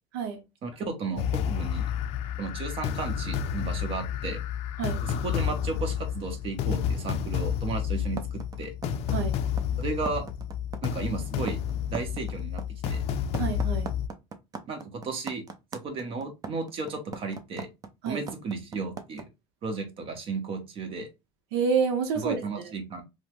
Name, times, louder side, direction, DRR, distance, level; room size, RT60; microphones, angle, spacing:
voice 1, 0.6-1.8 2.4-4.4 5.0-8.2 8.6-8.7 9.8-10.3 10.8-11.6 11.9-12.6 12.9-13.0 14.7-15.5 15.8-17.7 18.1-19.2 19.6-21.1 22.2-23.0, right 4 dB, 45° right, 0.9 m, -34 dB
sound 1, 1.2-14.1, left 8 dB, 55° left, 0.4 m, -30 dB
sound 2, 8.2-19.2, right 5 dB, 25° right, 0.5 m, -39 dB
voice 2, 13.4-13.9 18.0-18.2 21.5-22.4, right 6 dB, 85° right, 0.7 m, -28 dB
3.0 x 2.1 x 3.0 m
supercardioid pair, 120°, 13 cm